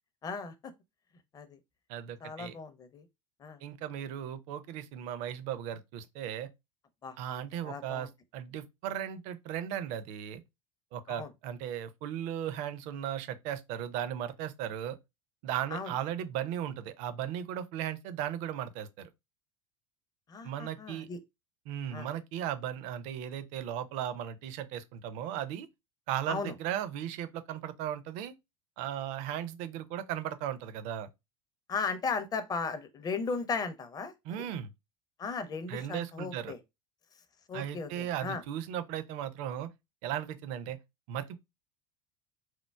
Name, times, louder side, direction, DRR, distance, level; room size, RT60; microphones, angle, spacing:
voice 1, 0.2-0.7 1.3-1.6 2.2-3.0 3.4-3.6 7.0-8.1 11.1-11.3 15.7-15.9 20.3-21.2 21.9-22.1 26.3-26.5 31.7-34.5 35.2-36.6 37.5-38.4, left 4 dB, 25° left, 0.5 m, -36 dB
voice 2, 1.9-2.6 3.6-6.5 7.2-10.4 10.9-15.0 15.4-19.1 20.4-21.1 21.7-25.7 26.1-28.3 28.8-31.1 34.3-34.7 35.7-36.5 37.5-39.7 40.0-40.8 41.1-41.4, right 10 dB, 45° right, 0.4 m, -36 dB
4.3 x 2.0 x 2.2 m
figure-of-eight pair, 75°, 17 cm